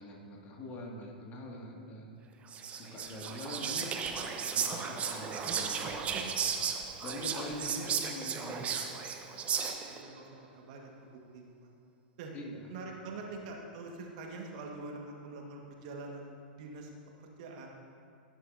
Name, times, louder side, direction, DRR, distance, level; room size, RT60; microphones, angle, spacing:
voice 1, 0.0-2.2 2.7-3.9 4.5-6.7 7.0-8.8 12.3-12.6, left 1 dB, 30° left, -1 dB, 2.2 m, -44 dB
Whispering, 2.5-10.0, right 6 dB, 25° right, 1.0 m, -35 dB
voice 2, 9.7-11.7 12.2-12.3 12.7-16.9 17.2-17.7, right 3 dB, 50° right, 1 dB, 1.7 m, -45 dB
17.0 x 11.0 x 2.8 m, 2.3 s
figure-of-eight pair, 100°, 5 cm